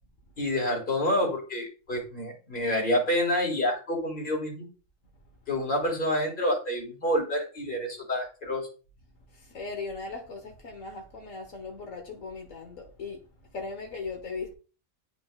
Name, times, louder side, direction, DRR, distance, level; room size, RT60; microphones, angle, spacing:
voice 1, 0.4-4.7 5.5-8.7, left 1 dB, 40° left, 2.1 m, -28 dB
voice 2, 9.3-13.2 13.5-14.5, left 4 dB, 85° left, 1.6 m, -38 dB
11.0 x 4.0 x 2.4 m
omnidirectional pair, 1.3 m